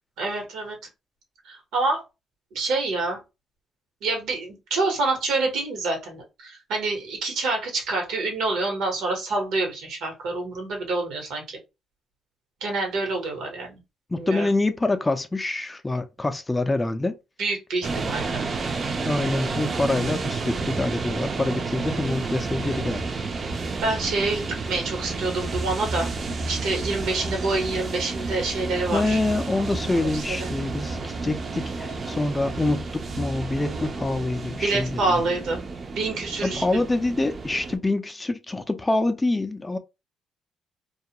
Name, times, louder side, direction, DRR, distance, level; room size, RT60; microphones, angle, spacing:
voice 1, 0.2-0.8 1.4-2.0 2.5-3.2 4.0-11.6 12.6-13.8 14.1-14.5 17.4-18.4 23.8-26.1 26.4-29.2 30.1-30.5 34.6-35.6 35.9-36.6, right 3 dB, 80° right, 1.0 m, -27 dB
voice 2, 14.1-17.2 17.9-18.1 19.0-23.2 28.9-35.2 36.4-39.8, left 2 dB, 20° left, 0.4 m, -26 dB
sound 1, 17.8-37.8, right 3 dB, 40° right, 0.5 m, -31 dB
2.3 x 2.1 x 2.9 m
cardioid pair, 90°, 0 cm